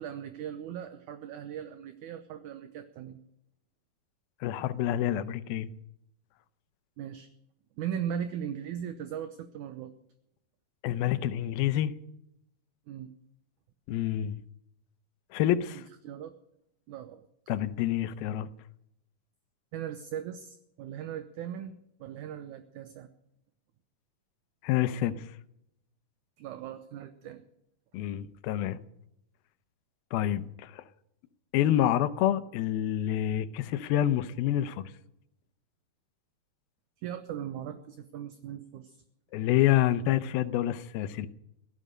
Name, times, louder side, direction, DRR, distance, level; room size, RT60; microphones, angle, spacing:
voice 1, 0.0-3.2 7.0-7.3 7.8-9.9 12.9-13.1 15.8-16.4 16.9-17.3 19.7-23.1 26.4-27.4 37.0-39.0, right 9 dB, 70° right, 2.0 m, -38 dB
voice 2, 4.4-5.7 10.8-12.0 13.9-14.4 15.3-15.8 17.5-18.5 24.6-25.3 27.9-28.8 30.1-30.8 31.5-34.9 39.3-41.3, left 12 dB, 80° left, 2.6 m, -27 dB
16.5 x 12.5 x 6.5 m
omnidirectional pair, 4.3 m